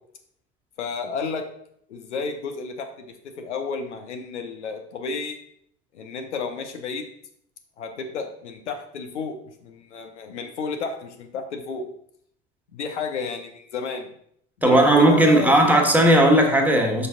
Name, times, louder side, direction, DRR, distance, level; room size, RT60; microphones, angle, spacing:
voice 1, 0.8-1.4 1.9-5.4 5.9-7.0 7.8-9.4 9.6-11.9 12.7-14.1 14.6-15.6, left 4 dB, 85° left, 0.8 m, -31 dB
voice 2, 14.6-17.1, right 1 dB, 5° right, 1.3 m, -16 dB
5.4 x 5.4 x 3.7 m
hypercardioid pair, 65°, 34 cm